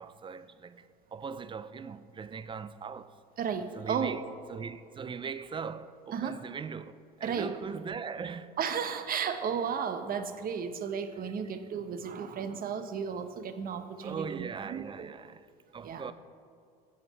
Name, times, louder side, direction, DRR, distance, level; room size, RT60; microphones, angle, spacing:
voice 1, 0.0-3.2 3.7-4.2 4.5-8.6 14.0-16.1, right 6 dB, 25° right, 0.4 m, -40 dB
voice 2, 3.4-4.2 6.1-6.4 7.2-7.5 8.6-15.1 15.8-16.1, right 7 dB, 45° right, 0.8 m, -34 dB
15.5 x 5.2 x 4.1 m
hypercardioid pair, 75°, 20 cm